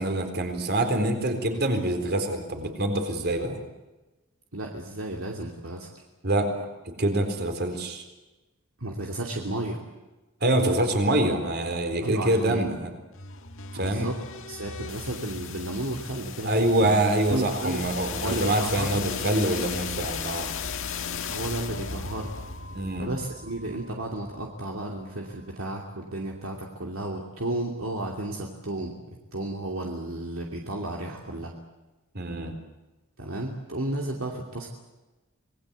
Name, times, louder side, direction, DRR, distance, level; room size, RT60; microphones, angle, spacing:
voice 1, 0.0-3.6 6.2-6.7 7.0-8.0 10.4-12.9 13.7-14.1 16.4-20.5 22.7-23.1 32.1-32.5, right 1 dB, 50° right, 6 dB, 4.1 m, -25 dB
voice 2, 4.5-5.9 8.8-9.8 12.0-12.7 13.8-14.2 14.5-17.0 17.3-17.9 18.2-19.0 21.3-22.4 23.0-28.9 29.3-31.5 33.2-34.7, right 1 dB, 65° right, 0 dB, 2.8 m, -33 dB
sound 1, 13.1-25.0, left 6 dB, 65° left, 1.7 m, -36 dB
26.5 x 20.0 x 8.3 m, 1.1 s
head